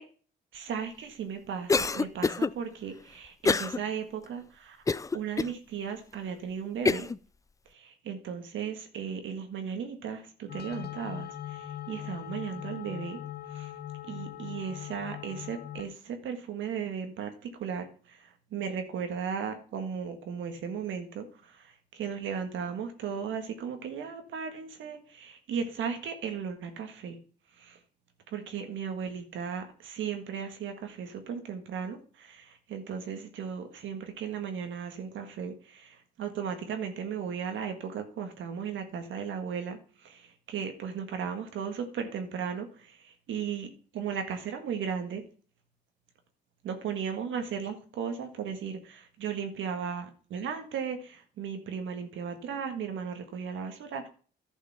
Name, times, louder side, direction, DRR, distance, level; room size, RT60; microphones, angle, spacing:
voice 1, 0.5-4.8 5.1-7.1 7.7-13.2 13.5-13.7 14.1-27.2 27.6-27.8 28.3-45.2 46.6-54.1, right 7 dB, 75° right, 6 dB, 1.8 m, -36 dB
Cough, 1.7-2.5 3.4-3.8 4.2-4.3 4.9-5.5 6.1-6.2 6.9-7.2, left 4 dB, 15° left, 0.4 m, -26 dB
sound 1, 10.5-15.8, left 12 dB, 55° left, 1.1 m, -40 dB
11.0 x 5.6 x 5.7 m, 0.41 s
cardioid pair, 90°, 20 cm